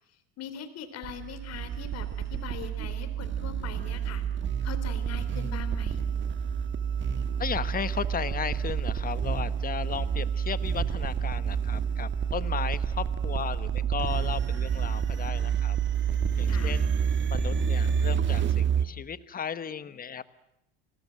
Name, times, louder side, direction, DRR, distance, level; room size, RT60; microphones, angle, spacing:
voice 1, 0.4-4.2 4.6-6.0 16.5-16.8, left 7 dB, 50° left, 10 dB, 3.6 m, -41 dB
sound 1, 1.0-18.9, right 7 dB, 35° right, 1.7 m, -29 dB
voice 2, 7.4-15.8 16.4-16.9 17.3-20.2, left 7 dB, 25° left, 14 dB, 1.2 m, -35 dB
30.0 x 20.0 x 7.7 m, 0.82 s
supercardioid pair, 115°, 33 cm